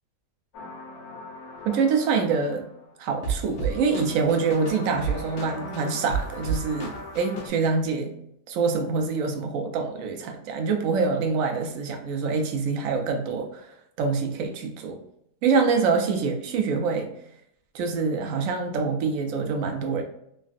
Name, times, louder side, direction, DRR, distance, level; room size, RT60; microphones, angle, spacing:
sound 1, 0.5-2.6 3.2-7.5, right 4 dB, 70° left, 1.1 m, -33 dB
voice 1, 1.6-2.7 3.0-8.1 8.5-13.7 14.0-15.0 15.4-17.1 17.7-20.0, right 5 dB, 70° right, 4 dB, 0.9 m, -25 dB
3.2 x 2.3 x 2.4 m, 0.75 s
omnidirectional pair, 1.7 m